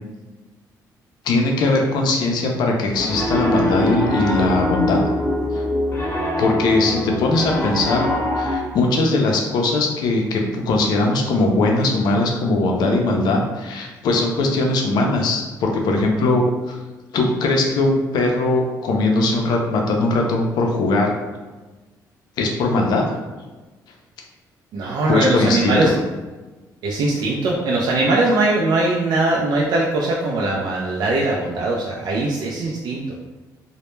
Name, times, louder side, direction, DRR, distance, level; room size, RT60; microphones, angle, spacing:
voice 1, 1.2-5.0 5.5-5.6 6.4-8.1 8.4-16.8 17.1-21.2 22.4-23.0 25.1-25.9, left 2 dB, 75° left, 1 dB, 0.5 m, -20 dB
Piano, 2.9-8.6, left 1 dB, 35° left, 0.8 m, -23 dB
voice 2, 24.7-25.9 26.8-33.0, right 2 dB, 70° right, -3 dB, 0.4 m, -20 dB
2.1 x 2.1 x 3.0 m, 1.2 s
cardioid pair, 90°, 7 cm